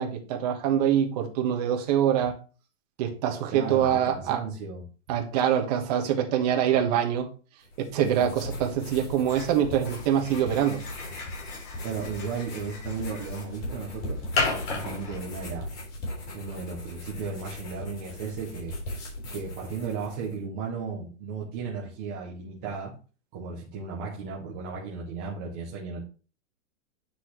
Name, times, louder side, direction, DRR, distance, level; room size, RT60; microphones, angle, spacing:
voice 1, 0.0-2.3 3.0-4.4 5.1-7.3 7.8-10.8, right 9 dB, 30° right, 1.4 m, -25 dB
voice 2, 3.5-4.8 11.8-15.7 16.3-18.8 19.3-22.9 23.3-26.0, right 5 dB, 10° right, 0.4 m, -35 dB
sound 1, 7.6-20.3, left 1 dB, 30° left, 4.1 m, -39 dB
sound 2, 9.3-15.6, left 3 dB, 50° left, 4.7 m, -35 dB
9.7 x 6.0 x 3.0 m
supercardioid pair, 175°, 38 cm